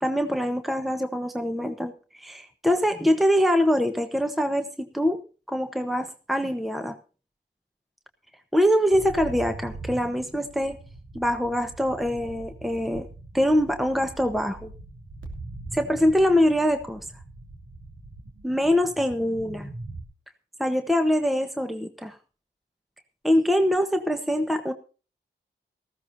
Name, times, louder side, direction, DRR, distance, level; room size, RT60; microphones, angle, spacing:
voice 1, 0.0-5.2 5.5-7.0 8.5-10.8 11.1-13.0 13.3-14.7 15.7-17.0 18.4-19.7 20.6-22.1 23.2-24.7, equal, ahead, 6 dB, 1.2 m, -24 dB
sound 1, 8.9-20.0, right 2 dB, 80° right, 2.9 m, -42 dB
18.5 x 15.0 x 2.7 m, 0.36 s
cardioid pair, 60°, 19 cm